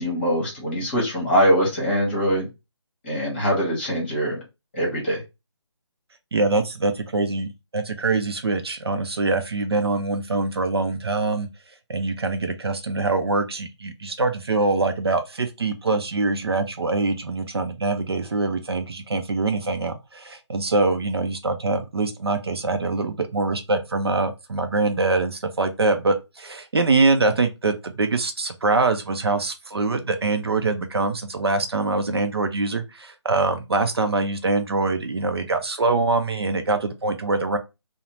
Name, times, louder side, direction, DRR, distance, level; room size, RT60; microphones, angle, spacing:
voice 1, 0.0-2.5 3.0-4.4 4.7-5.2, equal, 25° left, 1.0 m, -22 dB
voice 2, 6.3-11.5 11.9-37.6, right 3 dB, 55° right, 0.5 m, -24 dB
2.6 x 2.0 x 3.0 m
figure-of-eight pair, 150°, 15 cm